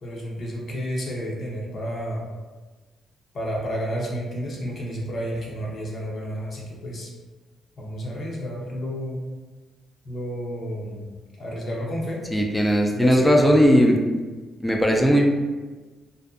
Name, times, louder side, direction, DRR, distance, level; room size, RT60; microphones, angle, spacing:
voice 1, 0.0-2.3 3.3-7.1 7.8-9.2 10.0-12.2 12.9-13.6, equal, 50° left, -2 dB, 0.7 m, -31 dB
voice 2, 12.3-14.0 14.6-15.2, equal, 10° left, 1 dB, 0.4 m, -18 dB
2.5 x 2.2 x 2.4 m, 1.3 s
cardioid pair, 90°, 0 cm